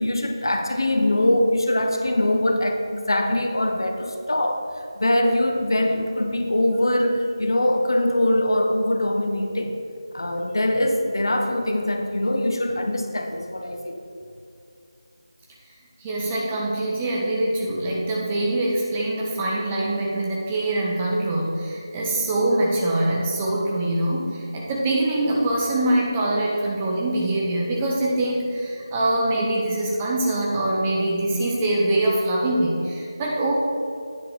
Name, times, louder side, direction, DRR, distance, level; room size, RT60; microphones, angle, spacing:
voice 1, 0.0-9.7 10.1-14.0, left 1 dB, 60° left, 4 dB, 0.9 m, -22 dB
voice 2, 16.0-33.5, right 1 dB, 15° right, -4 dB, 0.8 m, -24 dB
9.5 x 5.9 x 4.8 m, 2.6 s
figure-of-eight pair, 165°, 2 cm